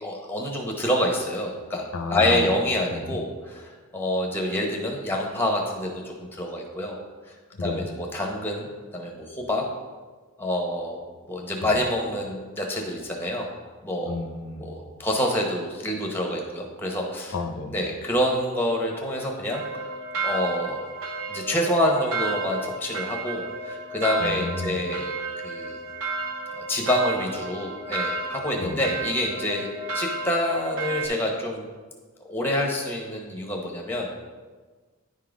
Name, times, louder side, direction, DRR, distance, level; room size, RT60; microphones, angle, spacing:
voice 1, 0.0-7.0 7.6-8.7 8.9-9.6 10.4-11.0 11.3-13.5 13.8-14.2 14.6-17.4 17.7-19.9 20.2-20.8 21.3-25.1 25.4-25.8 26.5-29.7 29.9-31.7 32.3-34.1, left 1 dB, 10° left, 0 dB, 0.9 m, -27 dB
voice 2, 1.9-2.5 2.9-3.2 7.6-7.9 14.1-14.7 17.3-17.8 24.2-24.8 28.6-28.8, left 3 dB, 75° left, 5 dB, 0.8 m, -31 dB
sound 1, 19.5-31.1, right 3 dB, 65° right, 0.8 m, -32 dB
9.9 x 3.8 x 5.0 m, 1.4 s
head